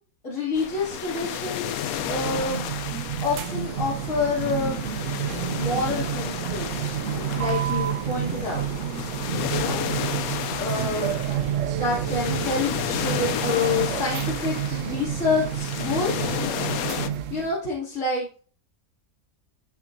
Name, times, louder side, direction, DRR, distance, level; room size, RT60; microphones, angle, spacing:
voice 1, 0.2-2.7 3.2-4.9 5.5-6.9 7.3-8.6 9.5-9.8 10.6-11.2 11.7-16.3 17.3-18.4, left 3 dB, 55° left, -6 dB, 3.0 m, -28 dB
sound 1, 0.6-17.1, left 10 dB, 80° left, 1.1 m, -32 dB
sound 2, 1.9-17.6, right 9 dB, 65° right, 1.0 m, -29 dB
13.0 x 6.1 x 2.7 m, 0.40 s
omnidirectional pair, 1.5 m